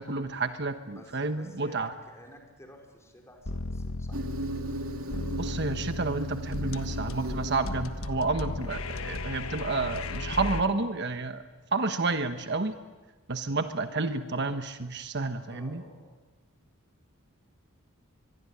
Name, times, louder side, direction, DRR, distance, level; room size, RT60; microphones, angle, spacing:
voice 1, 0.0-1.9 5.4-11.4 11.7-12.7 13.3-15.8, right 3 dB, 55° right, 8 dB, 1.2 m, -30 dB
voice 2, 0.9-4.2 8.6-8.7 15.5-16.2, equal, 15° left, 1 dB, 5.0 m, -52 dB
sound 1, 3.5-10.6, left 2 dB, 80° left, 1.4 m, -35 dB
Insect, 4.1-9.1, right 2 dB, 80° right, 2.7 m, -38 dB
24.0 x 23.5 x 9.8 m, 1.2 s
head